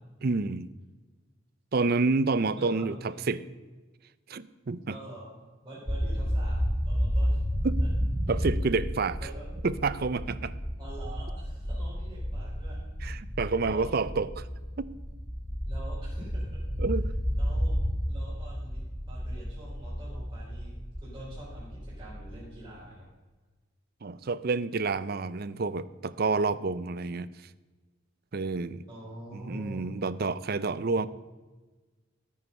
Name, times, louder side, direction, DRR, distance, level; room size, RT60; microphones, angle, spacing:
voice 1, 0.2-0.7 1.7-3.4 4.3-4.9 7.6-7.8 8.3-9.2 9.6-10.6 13.0-14.5 14.8-14.9 16.8-17.1 24.0-27.3 28.3-28.8 29.3-31.1, right 4 dB, 50° right, 16 dB, 0.5 m, -29 dB
voice 2, 2.5-3.3 4.9-7.4 8.3-8.5 9.2-9.5 10.8-12.8 13.6-14.0 15.6-16.6 17.4-17.8 18.0-20.7 21.0-23.0 28.9-29.9 30.9-31.1, right 1 dB, 20° right, -11 dB, 4.7 m, -45 dB
sound 1, 5.9-22.7, equal, 10° left, 1.4 m, -32 dB
13.0 x 9.4 x 5.4 m, 1.3 s
head